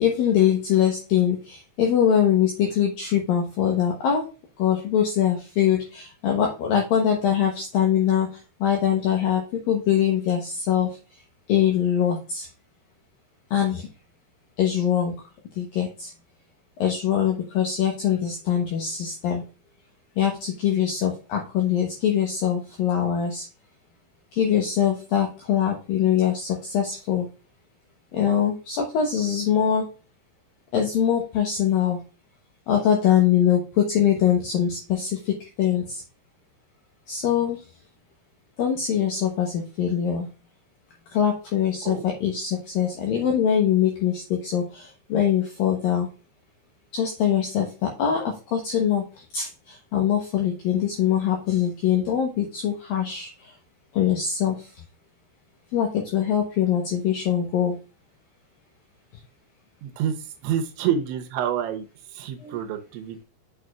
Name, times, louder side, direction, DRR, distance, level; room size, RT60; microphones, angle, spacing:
voice 1, 0.0-4.3 4.6-10.9 11.5-12.5 13.5-13.9 14.6-15.1 15.6-16.1 16.8-19.4 20.2-23.5 24.3-27.3 28.1-29.8 30.7-32.0 32.7-36.0 37.1-37.6 38.6-40.3 41.1-46.1 46.9-53.5 53.9-54.7 55.7-57.8 62.4-62.6, left 9 dB, 80° left, 1 dB, 2.1 m, -23 dB
voice 2, 59.8-63.2, right 9 dB, 80° right, 5 dB, 3.0 m, -28 dB
6.6 x 6.5 x 2.4 m, 0.33 s
omnidirectional pair, 5.5 m